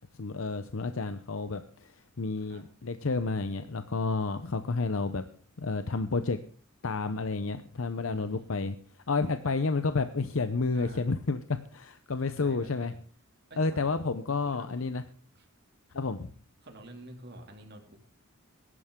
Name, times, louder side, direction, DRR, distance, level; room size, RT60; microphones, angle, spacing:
voice 1, 0.2-5.2 5.6-6.4 6.8-8.8 9.1-12.9 13.6-15.0 15.9-16.3, left 3 dB, 65° left, 10 dB, 0.7 m, -30 dB
voice 2, 8.1-8.8 10.7-11.1 12.2-12.9 13.5-13.9 14.3-14.9 15.3-15.5 16.6-18.0, right 1 dB, 50° right, 3 dB, 2.6 m, -49 dB
20.5 x 11.0 x 3.7 m, 0.43 s
head